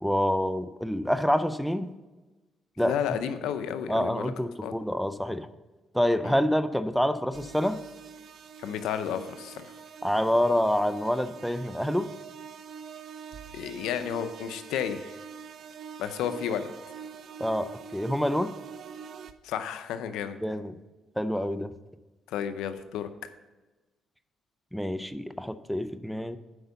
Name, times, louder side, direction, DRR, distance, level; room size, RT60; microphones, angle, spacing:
voice 1, 0.0-1.9 2.8-3.0 3.9-5.5 5.9-7.8 10.0-12.1 17.4-18.5 20.4-20.8 21.2-21.7 24.7-26.4, equal, ahead, 11 dB, 0.5 m, -27 dB
voice 2, 2.8-4.3 4.6-4.7 6.2-6.3 8.6-9.7 13.5-15.1 16.0-16.7 19.4-20.4 22.3-23.1, left 9 dB, 90° left, 10 dB, 0.6 m, -32 dB
sound 1, 7.3-19.3, right 7 dB, 65° right, 0.6 m, -44 dB
7.9 x 5.3 x 7.0 m, 1.2 s
cardioid pair, 90°, 0 cm